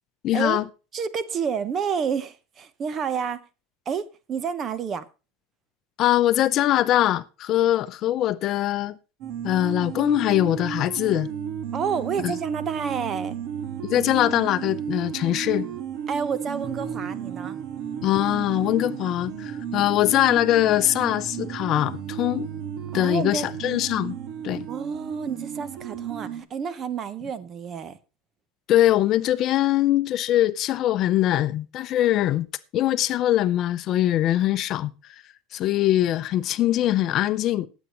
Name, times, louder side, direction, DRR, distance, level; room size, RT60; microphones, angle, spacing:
voice 1, 0.2-0.6 6.0-9.0 9.4-11.3 12.2-12.3 13.9-15.7 18.0-22.5 22.9-24.2 24.4-24.7 28.7-32.5 32.7-34.9 35.5-37.7, left 13 dB, 45° left, 0.6 m, -22 dB
voice 2, 0.9-3.4 3.9-5.1 11.7-13.3 16.1-17.6 22.9-23.5 24.7-28.0, right 6 dB, 35° right, 0.9 m, -29 dB
sound 1, 9.2-26.4, right 8 dB, 60° right, 1.9 m, -33 dB
20.5 x 8.1 x 3.0 m
supercardioid pair, 130°, 0 cm